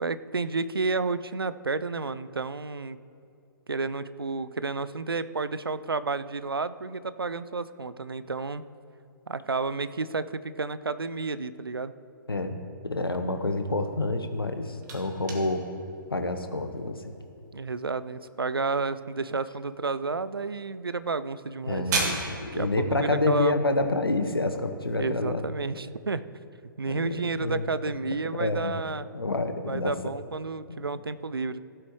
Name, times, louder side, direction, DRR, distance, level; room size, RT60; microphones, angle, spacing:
voice 1, 0.0-3.0 3.7-8.6 9.3-11.9 17.5-22.2 22.5-23.6 25.0-26.2 26.8-29.1 29.7-31.6, right 4 dB, 90° right, 14 dB, 0.4 m, -31 dB
voice 2, 12.8-15.7 16.1-17.2 21.7-25.4 26.9-27.6 28.2-28.7 29.1-30.1 30.7-30.9, left 2 dB, 90° left, 7 dB, 0.9 m, -28 dB
sound 1, 14.2-25.0, right 3 dB, 50° right, 2.2 m, -39 dB
16.5 x 7.8 x 3.1 m, 2.6 s
figure-of-eight pair, 125°, 12 cm